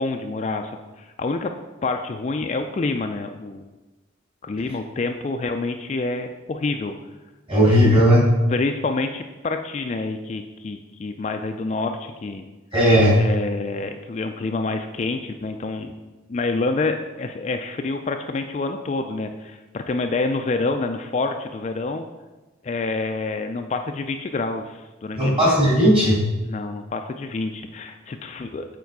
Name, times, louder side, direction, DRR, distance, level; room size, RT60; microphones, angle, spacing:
voice 1, 0.0-1.5 1.8-3.7 4.4-6.9 7.6-8.0 8.5-12.4 13.2-15.9 16.3-22.0 22.6-25.6 26.4-28.8, left 3 dB, 35° left, 6 dB, 0.3 m, -27 dB
voice 2, 7.5-8.2 12.7-13.2 25.2-26.2, equal, 30° right, -5 dB, 2.5 m, -16 dB
7.1 x 4.5 x 4.6 m, 1.2 s
head